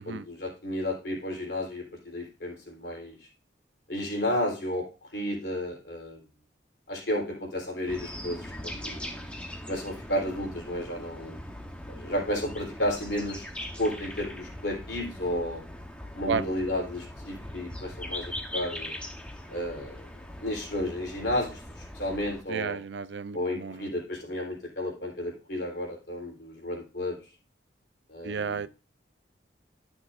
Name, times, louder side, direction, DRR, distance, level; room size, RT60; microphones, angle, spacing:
voice 1, 0.0-3.3 3.9-6.2 6.9-9.2 9.7-11.4 11.9-13.5 13.8-15.6 16.1-19.0 19.5-22.8 23.3-27.2 28.1-28.7, left 1 dB, 60° left, 3.5 m, -32 dB
sound 1, 7.9-22.4, left 1 dB, 5° left, 0.9 m, -41 dB
voice 2, 22.5-23.8 28.2-28.7, right 5 dB, 70° right, 0.4 m, -32 dB
13.0 x 6.2 x 2.5 m
head